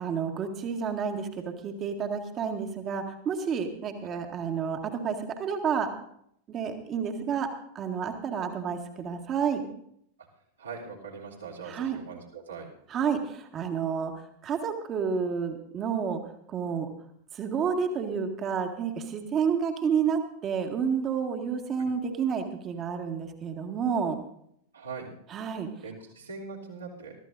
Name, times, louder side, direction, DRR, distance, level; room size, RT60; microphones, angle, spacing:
voice 1, 0.0-5.9 6.5-7.5 7.8-9.6 11.7-12.0 12.9-14.1 14.4-16.2 16.5-16.9 17.3-24.2 25.3-25.7, right 6 dB, 30° right, 4 dB, 1.9 m, -30 dB
voice 2, 10.6-12.7 21.8-21.9 24.7-25.1 25.8-27.1, right 5 dB, 70° right, -3 dB, 3.1 m, -41 dB
22.5 x 14.0 x 2.6 m, 0.70 s
figure-of-eight pair, 90°, 0 cm